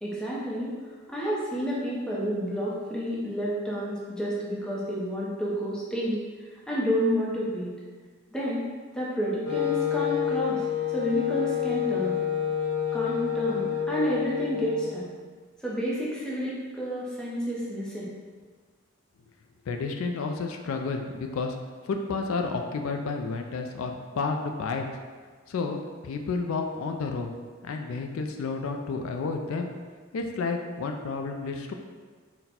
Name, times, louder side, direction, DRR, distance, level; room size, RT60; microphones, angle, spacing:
voice 1, 0.0-0.7 1.1-6.2 6.7-7.7 8.3-8.6 8.9-10.6 10.9-12.2 12.9-15.1 15.6-18.1, equal, 5° left, -7 dB, 0.7 m, -30 dB
Wind instrument woodwind instrument, 9.4-15.1, left 9 dB, 55° left, 0.9 m, -28 dB
voice 2, 19.7-21.5 21.9-24.9 25.5-27.3 27.6-29.7 30.1-31.7, left 4 dB, 80° left, 4 dB, 0.3 m, -31 dB
4.0 x 2.1 x 4.2 m, 1.5 s
head